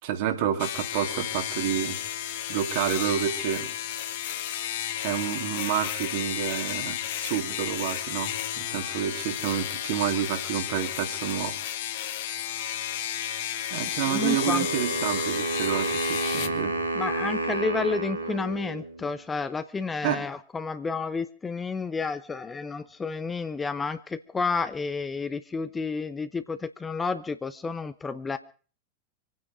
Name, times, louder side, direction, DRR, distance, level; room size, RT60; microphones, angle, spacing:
voice 1, 0.0-2.0 2.5-3.7 5.0-11.6 13.7-16.8 20.0-20.3, right 10 dB, 50° right, 5 dB, 2.5 m, -29 dB
sound 1, 0.6-16.5, left 11 dB, 55° left, 1.4 m, -32 dB
voice 2, 14.1-14.7 16.9-28.4, left 4 dB, 15° left, 11 dB, 0.9 m, -31 dB
Wind instrument woodwind instrument, 14.2-19.2, right 2 dB, 85° right, 2.9 m, -30 dB
26.5 x 9.6 x 5.1 m, 0.40 s
figure-of-eight pair, 90°, 0 cm